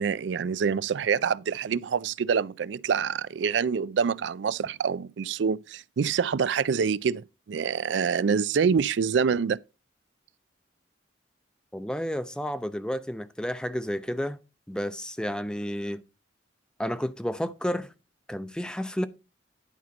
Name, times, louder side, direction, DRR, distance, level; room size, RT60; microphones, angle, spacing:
voice 1, 0.0-9.6, right 6 dB, 75° right, 0.4 m, -26 dB
voice 2, 11.7-14.4 14.7-16.0 16.8-17.9 18.3-19.1, equal, 5° left, 0.6 m, -31 dB
11.0 x 4.4 x 5.2 m
head